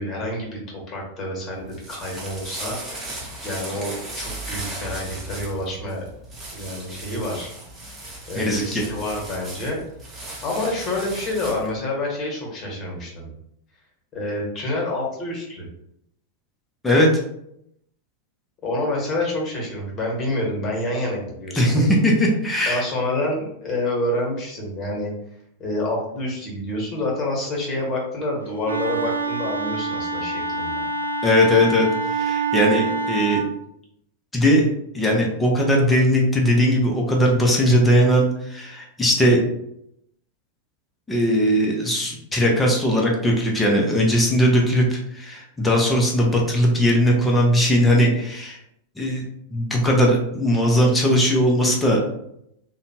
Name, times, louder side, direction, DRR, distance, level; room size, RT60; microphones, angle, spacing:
voice 1, 0.0-3.1 3.4-6.0 6.5-7.5 7.8-7.9 8.3-9.8 10.4-13.3 14.1-15.7 18.6-22.0 22.7-25.1 25.6-30.9, left 1 dB, 35° left, -1 dB, 1.2 m, -28 dB
sound 1, 1.5-11.7, right 1 dB, 20° right, 1.1 m, -36 dB
voice 2, 8.3-8.8 16.8-17.1 21.6-22.8 31.2-33.4 34.3-34.7 34.9-39.4 41.1-48.6 49.0-49.2 49.5-52.0, equal, 10° left, -1 dB, 0.7 m, -19 dB
Wind instrument woodwind instrument, 28.6-33.5, right 4 dB, 85° right, 0.3 m, -26 dB
2.7 x 2.2 x 2.8 m, 0.75 s
figure-of-eight pair, 95°, 0 cm